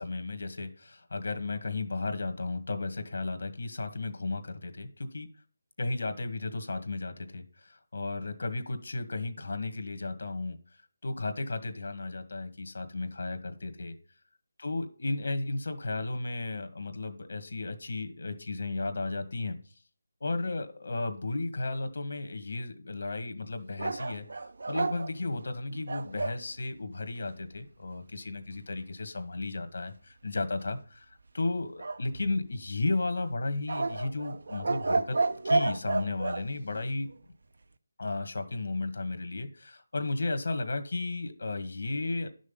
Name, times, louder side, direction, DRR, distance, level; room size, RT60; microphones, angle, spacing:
voice 1, 0.0-5.3 5.8-10.6 11.0-13.9 14.6-19.6 20.2-35.2 35.4-37.1 38.0-42.3, left 3 dB, 65° left, 8 dB, 1.9 m, -34 dB
sound 1, 23.8-26.4 31.8-32.7 33.7-36.4, right 3 dB, 60° right, 0.7 m, -31 dB
11.0 x 6.3 x 5.6 m, 0.41 s
figure-of-eight pair, 175°, 0 cm